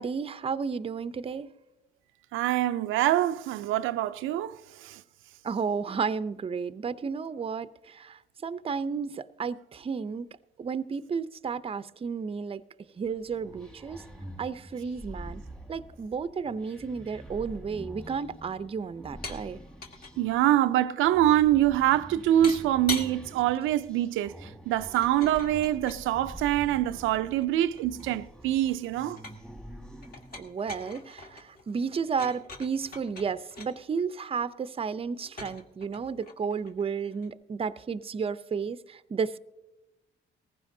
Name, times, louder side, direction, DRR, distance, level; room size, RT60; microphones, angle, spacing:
voice 1, 0.0-1.5 5.4-10.3 10.6-12.6 13.0-14.0 14.4-15.4 15.7-19.6 30.3-39.4, right 5 dB, 30° right, 0.5 m, -32 dB
voice 2, 2.3-5.0 20.2-29.2, right 13 dB, 90° right, 0.4 m, -25 dB
sound 1, 13.0-30.5, equal, 5° left, 1.3 m, -46 dB
sound 2, 19.2-19.4 19.7-20.1 22.4-23.2 24.9-26.1 27.0-28.3 28.6-29.5 30.0-33.7 35.2-37.3, left 3 dB, 50° left, 1.7 m, -42 dB
19.0 x 15.0 x 2.7 m
cardioid pair, 90°, 20 cm